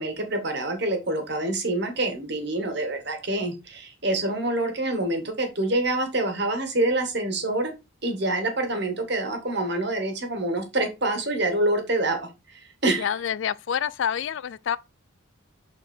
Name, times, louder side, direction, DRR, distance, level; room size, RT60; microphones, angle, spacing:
voice 1, 0.0-7.7 8.0-12.2 12.5-13.1, right 2 dB, 50° right, 1.7 m, -26 dB
voice 2, 13.0-14.8, left 8 dB, 60° left, 0.3 m, -27 dB
6.4 x 4.2 x 4.4 m
head